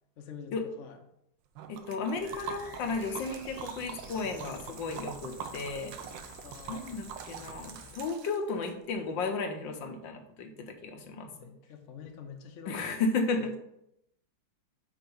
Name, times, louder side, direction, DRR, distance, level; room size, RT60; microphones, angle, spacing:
voice 1, 0.2-1.0 6.4-6.9 11.2-12.9 13.4-13.6, left 6 dB, 50° left, 2 dB, 0.9 m, -47 dB
Liquid, 1.6-8.7, right 7 dB, 75° right, 1.3 m, -44 dB
voice 2, 1.7-5.9 6.7-11.3 12.7-13.6, left 3 dB, 75° left, 5 dB, 1.5 m, -34 dB
sound 1, 2.2-8.0, left 2 dB, 15° left, 0.8 m, -50 dB
5.8 x 4.2 x 5.4 m, 0.79 s
omnidirectional pair, 2.2 m